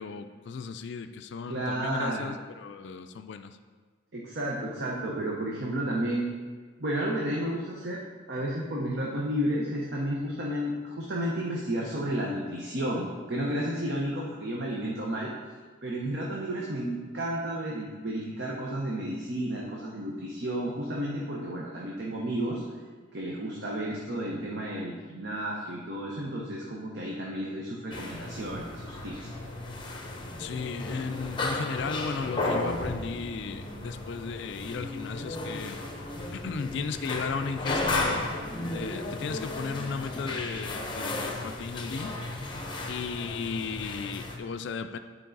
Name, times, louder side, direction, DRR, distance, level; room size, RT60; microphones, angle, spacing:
voice 1, 0.0-3.6 30.4-35.8 36.3-38.3 38.7-42.2 42.9-45.0, left 5 dB, 60° left, 9 dB, 0.3 m, -35 dB
voice 2, 1.5-2.3 4.1-6.3 6.8-8.0 8.3-15.3 15.8-22.6 23.1-29.3, right 1 dB, 55° right, -3 dB, 0.9 m, -32 dB
sound 1, 27.9-44.4, left 2 dB, 25° left, 0.8 m, -34 dB
10.0 x 4.6 x 3.9 m, 1.5 s
head